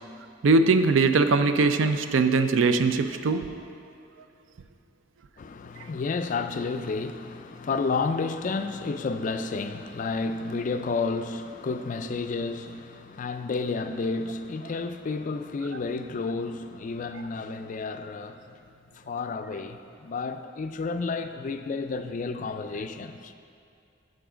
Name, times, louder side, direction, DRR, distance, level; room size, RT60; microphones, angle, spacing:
voice 1, 0.4-3.5, right 3 dB, 85° right, 0.4 m, -21 dB
voice 2, 5.4-18.5 18.9-23.3, left 4 dB, 45° left, 0.4 m, -31 dB
7.1 x 6.4 x 5.0 m
head